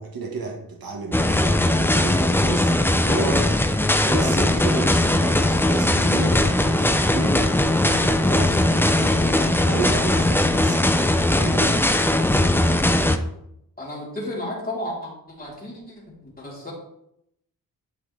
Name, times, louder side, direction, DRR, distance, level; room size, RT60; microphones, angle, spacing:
voice 1, 0.0-3.5 4.0-7.4 7.8-10.9 11.3-11.8, right 4 dB, 70° right, 1 dB, 1.6 m, -32 dB
sound 1, 1.1-13.2, left 1 dB, 5° left, 0.5 m, -19 dB
voice 2, 13.8-15.1 15.4-16.0 16.2-16.7, left 1 dB, 25° left, -6 dB, 3.9 m, -32 dB
11.5 x 6.0 x 3.4 m, 0.77 s
wide cardioid pair, 140°, 37 cm